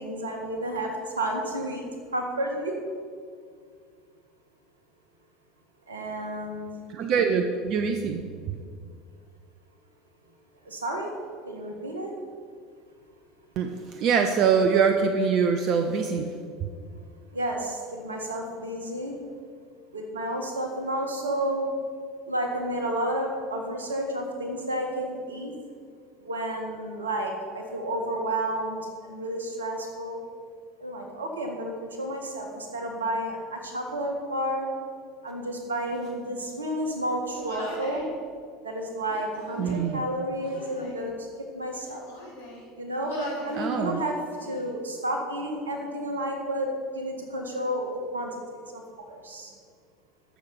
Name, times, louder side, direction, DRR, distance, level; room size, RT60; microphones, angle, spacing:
voice 1, 0.0-1.9 2.1-2.8 5.9-6.7 10.6-11.1 11.4-12.1 17.3-19.1 19.9-21.7 22.3-25.5 26.2-30.2 30.8-34.7 35.2-38.1 38.6-42.1 42.7-43.1 43.4-49.5, right 1 dB, 80° right, 3 dB, 1.6 m, -31 dB
voice 2, 6.9-8.2 13.6-16.3 39.6-40.0 43.5-44.0, right 6 dB, 50° right, 6 dB, 0.8 m, -24 dB
Human voice, 37.3-38.1 39.0-39.9 40.4-41.0 41.7-42.6 43.0-43.6 44.0-44.7, left 1 dB, 75° left, 2.5 m, -39 dB
14.0 x 6.6 x 5.8 m, 2.1 s
figure-of-eight pair, 75°, 0 cm